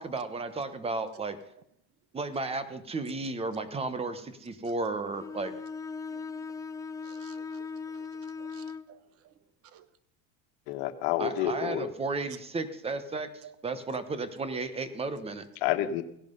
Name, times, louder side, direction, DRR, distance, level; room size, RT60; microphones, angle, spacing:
voice 1, 0.0-1.4 2.1-5.5 11.2-13.3 13.6-15.4, right 3 dB, 20° right, 12 dB, 1.3 m, -33 dB
Bowed string instrument, 5.1-8.9, left 5 dB, 10° left, 0.5 m, -39 dB
voice 2, 6.1-6.5 7.0-8.1 8.4-9.0 9.7-9.9 13.4-13.5, right 11 dB, 50° right, 15 dB, 1.1 m, -55 dB
voice 3, 10.7-11.9 15.6-16.0, left 11 dB, 80° left, 9 dB, 1.4 m, -29 dB
17.0 x 11.0 x 5.5 m, 0.72 s
cardioid pair, 135°, 30 cm